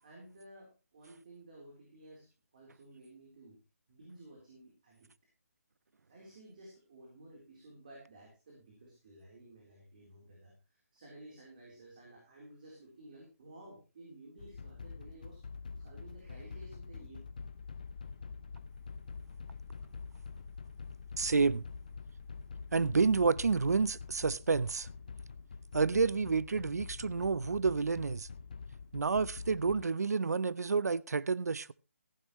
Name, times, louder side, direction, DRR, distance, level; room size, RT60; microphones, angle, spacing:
voice 1, 0.0-3.6 3.9-5.1 6.1-15.4 15.8-17.2, right 1 dB, 30° right, 3.6 m, -54 dB
sound 1, 14.4-29.8, left 5 dB, 30° left, 0.5 m, -46 dB
voice 2, 21.2-21.6 22.7-24.9 25.7-28.3 28.9-31.7, right 4 dB, 90° right, 0.6 m, -29 dB
15.0 x 10.5 x 3.1 m
hypercardioid pair, 175°, 8 cm